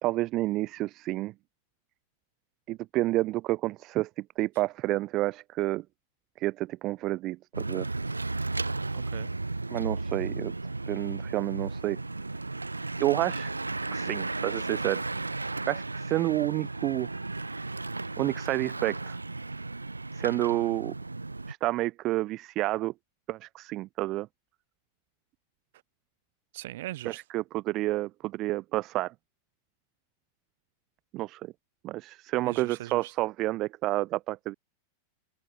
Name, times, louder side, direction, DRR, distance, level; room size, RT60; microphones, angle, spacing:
voice 1, 0.0-1.3 2.7-5.8 6.4-7.9 9.7-10.5 10.9-12.0 13.0-13.5 13.9-15.0 15.7-17.1 18.2-19.2 20.1-20.9 21.5-22.9 23.3-24.3 27.0-29.1 31.1-31.5 31.8-34.5, right 17 dB, 35° right, 0.8 m, -29 dB
Bicycle / Mechanisms, 7.5-21.5, right 3 dB, 80° right, 4.0 m, -34 dB
voice 2, 8.9-9.3 26.5-27.2 32.4-33.1, right 15 dB, 55° right, 7.4 m, -40 dB
open air
figure-of-eight pair, 90°, 0 cm